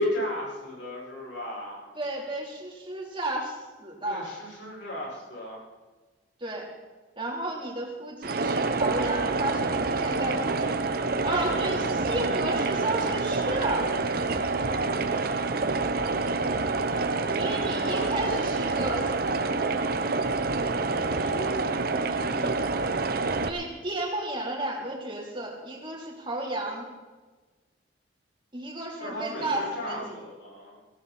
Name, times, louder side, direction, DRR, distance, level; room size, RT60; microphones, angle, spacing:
voice 1, 0.0-1.9 4.0-5.6 17.8-19.1 19.3-20.0 20.9-21.5 29.0-30.7, left 1 dB, 65° left, -3 dB, 6.4 m, -35 dB
voice 2, 2.0-4.3 6.4-6.7 7.2-10.8 11.2-13.9 17.3-19.1 22.3-22.6 23.4-26.9 28.5-30.1, right 1 dB, 25° right, -2 dB, 3.7 m, -32 dB
sound 1, 8.2-23.5, right 3 dB, 50° right, 0.9 m, -27 dB
18.0 x 16.0 x 4.3 m, 1.3 s
head